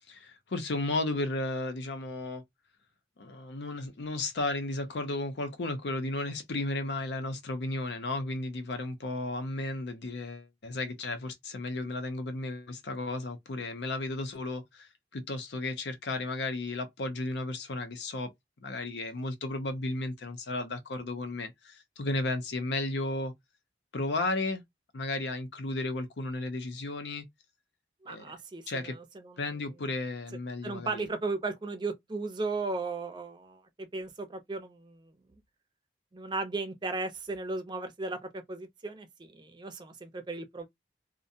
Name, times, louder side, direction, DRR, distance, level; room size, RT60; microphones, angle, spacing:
voice 1, 0.1-2.4 3.2-18.3 18.6-23.3 23.9-24.6 24.9-27.3 28.1-28.3 28.7-29.0 29.4-31.0, left 2 dB, 80° left, 0.6 m, -34 dB
voice 2, 28.0-29.4 30.6-35.1 36.1-40.7, right 3 dB, 25° right, 0.5 m, -36 dB
2.5 x 2.1 x 2.7 m
head